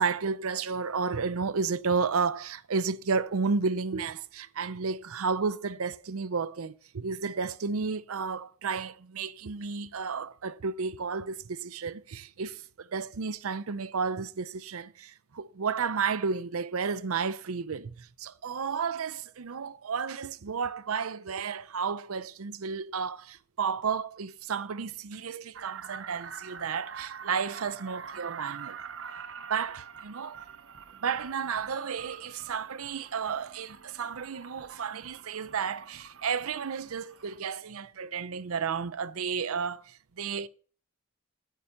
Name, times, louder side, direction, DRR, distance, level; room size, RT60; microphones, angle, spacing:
voice 1, 0.0-28.8 29.5-30.4 31.0-40.5, right 5 dB, 90° right, 0.6 m, -32 dB
sound 1, 25.5-37.4, right 6 dB, 65° right, 1.0 m, -45 dB
9.9 x 9.6 x 5.8 m
head